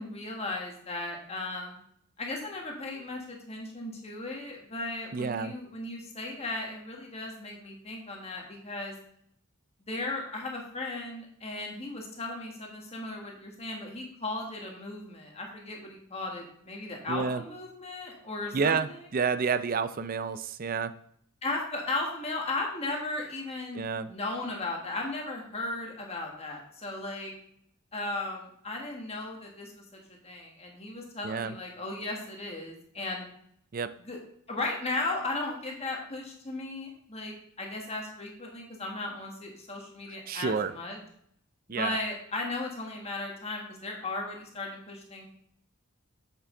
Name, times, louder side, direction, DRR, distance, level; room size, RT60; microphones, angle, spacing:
voice 1, 0.0-1.8 2.2-9.0 9.9-19.0 21.4-27.3 27.9-33.2 34.1-34.2 34.5-41.0 41.7-45.3, left 2 dB, 30° left, 0 dB, 1.5 m, -36 dB
voice 2, 5.1-5.5 17.1-17.4 18.5-20.9 23.7-24.1 31.2-31.5 33.7-33.9 40.3-40.7 41.7-42.0, right 5 dB, 40° right, 12 dB, 0.4 m, -29 dB
7.4 x 6.8 x 3.8 m, 0.69 s
head